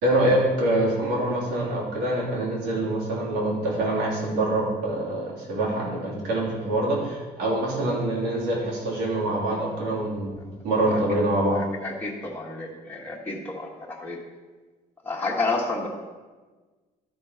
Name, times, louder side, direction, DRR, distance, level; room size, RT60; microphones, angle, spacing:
voice 1, 0.0-11.6, right 1 dB, 85° right, -4 dB, 3.3 m, -25 dB
voice 2, 11.5-14.2 15.0-15.9, left 3 dB, 10° left, -3 dB, 1.6 m, -31 dB
13.0 x 4.4 x 5.7 m, 1.3 s
cardioid pair, 110°, 17 cm